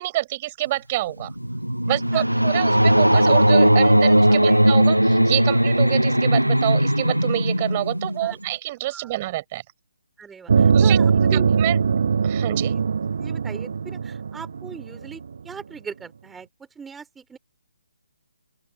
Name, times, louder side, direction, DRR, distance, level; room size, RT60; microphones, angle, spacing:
voice 1, 0.0-1.3 1.9-9.6 10.7-11.0 11.3-11.8 12.2-12.7, right 17 dB, 25° right, 6.0 m, -27 dB
sound 1, 1.1-8.4, equal, 85° right, 0.5 m, -18 dB
voice 2, 1.9-2.2 4.3-4.6 8.2-8.4 8.9-9.2 10.2-11.5 12.5-12.8 13.2-16.5 16.7-17.4, right 6 dB, 5° right, 4.4 m, -39 dB
sound 2, 10.5-15.4, right 6 dB, 50° right, 1.2 m, -20 dB
open air
figure-of-eight pair, 140°, 0 cm